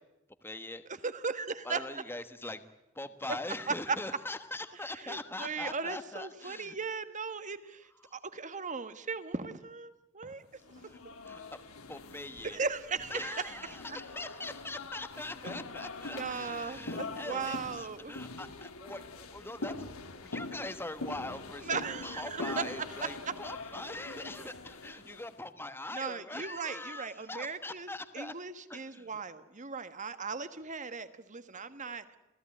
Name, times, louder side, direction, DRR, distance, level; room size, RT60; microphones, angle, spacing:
voice 1, 0.4-0.8 1.6-2.6 2.9-6.8 8.0-8.1 10.9-11.0 11.2-11.4 11.9-12.6 13.1-28.3 28.7-29.1, left 2 dB, 10° left, 10 dB, 1.3 m, -42 dB
voice 2, 1.0-1.8 3.7-4.0 4.9-10.4 10.8-10.9 12.4-13.6 13.9-14.0 15.4-15.5 16.1-18.2 21.6-23.2 24.4-24.5 25.9-32.0, right 5 dB, 35° right, 11 dB, 1.4 m, -37 dB
sound 1, 10.6-25.3, left 3 dB, 85° left, 2.5 m, -43 dB
28.0 x 16.0 x 9.9 m, 0.93 s
head